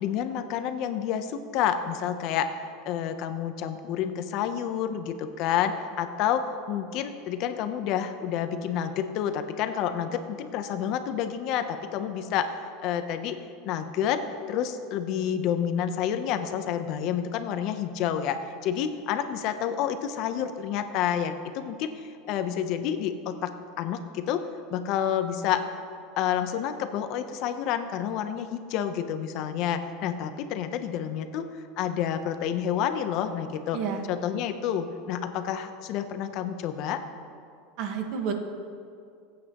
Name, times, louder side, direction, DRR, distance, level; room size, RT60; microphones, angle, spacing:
voice 1, 0.0-2.5 2.9-12.5 12.8-13.4 13.6-14.2 14.5-23.5 23.8-24.5 24.7-25.6 26.2-31.5 31.8-33.8 34.1-37.0, left 9 dB, 50° left, 9 dB, 0.7 m, -29 dB
voice 2, 33.7-34.0 37.8-38.3, right 6 dB, 55° right, 4 dB, 1.4 m, -30 dB
20.5 x 8.6 x 3.0 m, 2.4 s
supercardioid pair, 145°, 0 cm